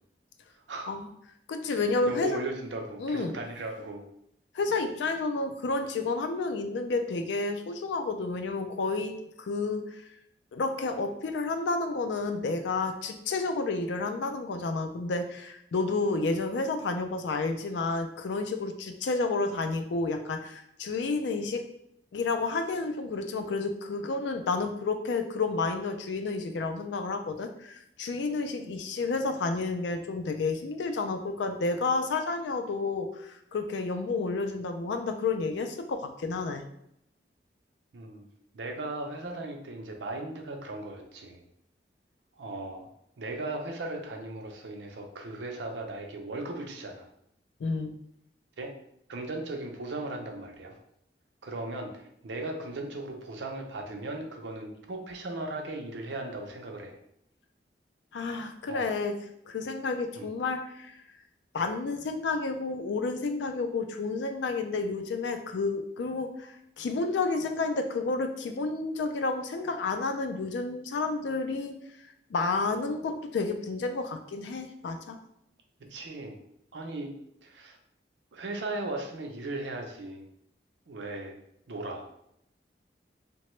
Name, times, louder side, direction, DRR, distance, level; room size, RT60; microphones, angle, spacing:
voice 1, 1.5-2.4 3.0-3.3 4.5-10.0 10.5-21.6 22.1-36.6 47.6-47.9 58.1-59.2 59.5-61.0 61.5-71.8 72.3-75.2, left 3 dB, 85° left, 7 dB, 0.4 m, -30 dB
voice 2, 2.0-4.0 37.9-38.3 38.5-41.4 42.4-42.9 43.2-47.1 48.6-48.7 49.1-50.8 51.4-57.0 58.7-58.8 60.2-60.3 75.8-76.4 76.7-77.1 77.4-77.8 78.3-80.2 80.9-81.4 81.7-82.1, right 2 dB, 85° right, 3 dB, 0.5 m, -37 dB
2.9 x 2.2 x 3.0 m, 0.75 s
head